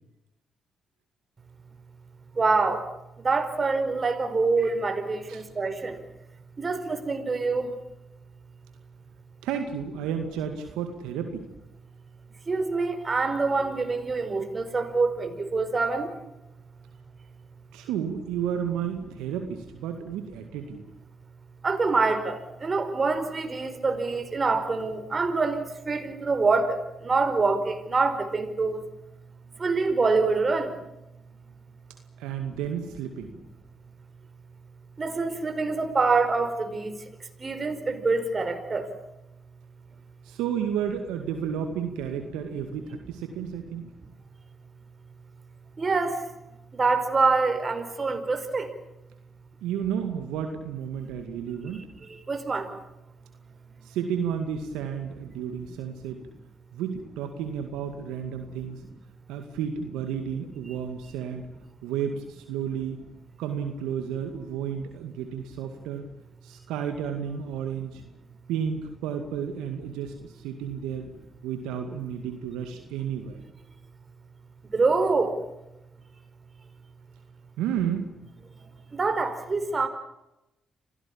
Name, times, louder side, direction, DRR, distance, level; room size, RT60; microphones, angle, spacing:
voice 1, 2.3-2.9 3.2-6.0 6.6-7.7 12.5-16.2 21.6-28.9 29.6-30.8 32.5-32.6 35.0-37.0 37.4-38.9 45.8-46.3 46.7-48.7 51.0-51.1 51.6-52.7 74.7-75.4 78.9-79.9, right 4 dB, 40° right, 8 dB, 4.9 m, -26 dB
voice 2, 9.4-11.5 17.7-20.8 32.2-33.4 40.2-43.9 49.6-51.9 53.8-56.2 56.7-58.8 59.3-61.5 61.8-63.0 63.4-66.1 66.4-68.0 68.5-71.1 71.4-73.4 77.6-78.1, right 8 dB, 85° right, 6 dB, 2.1 m, -32 dB
27.0 x 17.5 x 8.7 m, 0.93 s
supercardioid pair, 50°, 0 cm